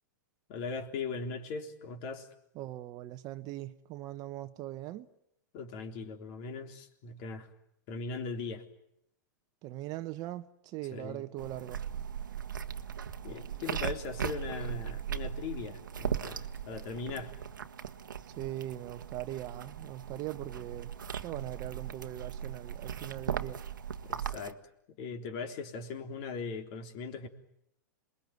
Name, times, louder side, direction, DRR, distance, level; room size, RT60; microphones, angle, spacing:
voice 1, 0.5-2.3 5.5-7.5 7.9-8.6 10.9-11.3 13.2-17.4 24.1-24.6 24.9-27.3, left 4 dB, 45° left, 3.7 m, -39 dB
voice 2, 2.5-5.1 9.6-11.8 18.4-20.9 21.2-23.6, right 14 dB, 40° right, 1.1 m, -40 dB
sound 1, 11.4-24.5, right 8 dB, 85° right, 1.4 m, -38 dB
27.5 x 22.0 x 9.5 m
hypercardioid pair, 120°, 10 cm